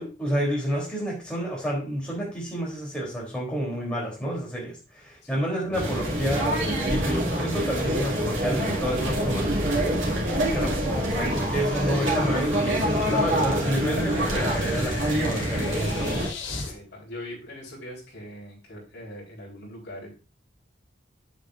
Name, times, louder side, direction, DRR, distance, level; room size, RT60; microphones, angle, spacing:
voice 1, 0.0-9.5 10.5-16.1, equal, 5° left, -4 dB, 3.2 m, -30 dB
sound 1, 5.7-16.3, right 1 dB, 80° right, 2.2 m, -26 dB
sound 2, 9.3-16.7, left 3 dB, 75° left, 1.7 m, -39 dB
voice 2, 10.1-10.4 16.7-20.1, left 1 dB, 55° left, -3 dB, 3.9 m, -41 dB
8.1 x 8.0 x 2.5 m, 0.33 s
head